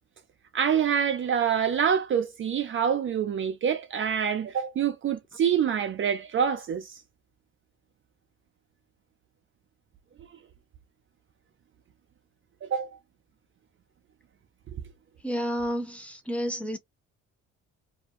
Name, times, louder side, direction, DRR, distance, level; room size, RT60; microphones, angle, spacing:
voice 1, 0.5-7.0 12.6-12.9 14.7-14.8, right 8 dB, 45° right, 0.4 m, -26 dB
voice 2, 15.2-16.8, equal, 5° left, 0.8 m, -30 dB
2.5 x 2.2 x 2.8 m
cardioid pair, 90°, 30 cm